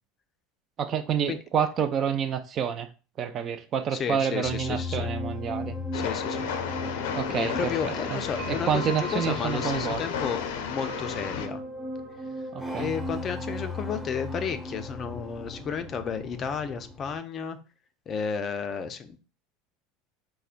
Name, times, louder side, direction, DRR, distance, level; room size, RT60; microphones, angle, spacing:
voice 1, 0.8-2.9 3.2-5.7 7.2-8.2 8.5-10.0 12.5-12.9, right 8 dB, 40° right, 0.4 m, -28 dB
voice 2, 3.9-5.1 5.9-6.5 7.3-10.4 10.7-11.6 12.7-17.6 18.1-19.2, left 6 dB, 35° left, 0.4 m, -32 dB
sound 1, 4.4-17.2, left 2 dB, ahead, 0.7 m, -37 dB
Train, 5.9-11.5, left 7 dB, 85° left, 0.5 m, -33 dB
sound 2, 6.3-14.4, right 3 dB, 80° right, 0.9 m, -45 dB
5.4 x 2.1 x 2.4 m
supercardioid pair, 120°, 0 cm